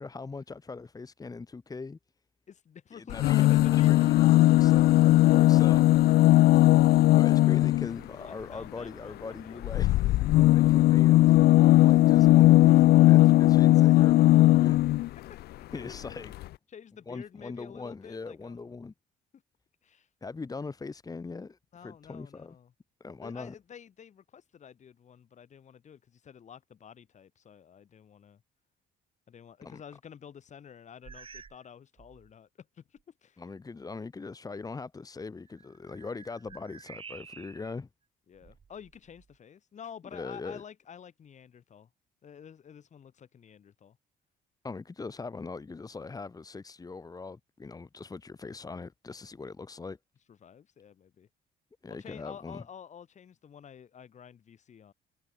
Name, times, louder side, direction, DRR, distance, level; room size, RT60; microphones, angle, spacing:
voice 1, 0.0-2.0 2.9-6.3 7.1-14.8 15.7-16.3 17.1-18.9 20.2-22.6 23.0-23.5 29.6-29.8 33.4-37.9 40.1-40.6 44.6-50.0 51.8-52.6, left 4 dB, 20° left, 2.6 m, -41 dB
voice 2, 2.5-4.2 8.1-9.6 15.3-15.4 15.7-16.2 16.7-18.8 19.8-20.1 21.7-22.7 23.2-28.4 29.3-33.4 38.3-41.9 42.2-44.0 50.3-51.3 51.9-54.9, left 8 dB, 45° left, 6.5 m, -50 dB
sound 1, 3.1-8.0 9.6-15.1 16.0-16.1 16.3-16.4, left 16 dB, 70° left, 0.7 m, -19 dB
sound 2, 31.0-31.7 32.0-32.3 33.0-33.1 35.5-37.8 38.3-39.4, right 6 dB, 30° right, 3.9 m, -50 dB
cardioid pair, 110°, 17 cm